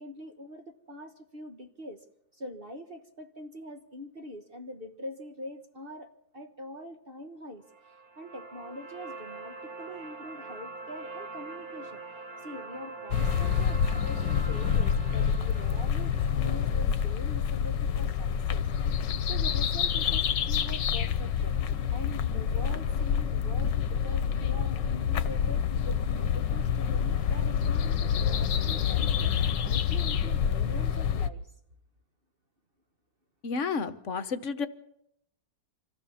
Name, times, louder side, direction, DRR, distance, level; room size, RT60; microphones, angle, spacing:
voice 1, 0.0-2.0 2.3-7.6 8.2-12.0 12.4-18.7 19.2-21.6 21.9-31.4, left 1 dB, 35° right, 6 dB, 1.3 m, -44 dB
sound 1, 7.6-17.7, right 3 dB, 55° right, 2.8 m, -44 dB
sound 2, 13.1-31.3, left 8 dB, 90° left, 1.7 m, -27 dB
voice 2, 33.4-34.7, left 5 dB, 50° left, 12 dB, 1.3 m, -31 dB
25.5 x 15.5 x 7.1 m, 0.74 s
omnidirectional pair, 1.9 m